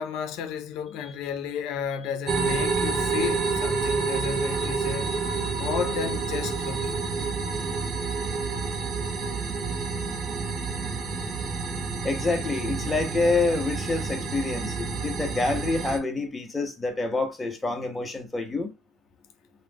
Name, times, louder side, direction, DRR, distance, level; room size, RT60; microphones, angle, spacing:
voice 1, 0.0-5.1 5.6-6.9, left 7 dB, 65° left, 0.5 m, -32 dB
sound 1, 2.3-16.0, right 4 dB, 40° right, 0.6 m, -29 dB
voice 2, 12.0-18.7, left 3 dB, 15° left, 0.7 m, -27 dB
2.3 x 2.1 x 3.4 m
cardioid pair, 125°, 0 cm